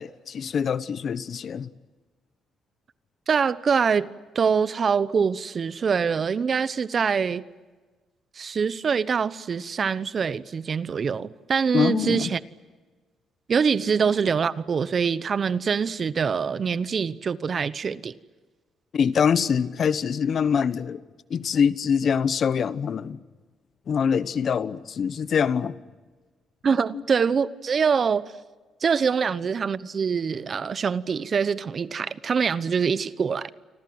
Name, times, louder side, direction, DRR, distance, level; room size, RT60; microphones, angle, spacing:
voice 1, 0.0-1.7 11.7-12.3 18.9-21.0 21.3-23.2 23.9-25.8, left 7 dB, 55° left, 1.1 m, -24 dB
voice 2, 3.3-4.1 4.3-7.4 8.4-12.4 13.5-18.1 26.6-28.2 28.8-33.5, right 6 dB, 45° right, 1.0 m, -24 dB
28.5 x 25.0 x 7.9 m
cardioid pair, 90°, 0 cm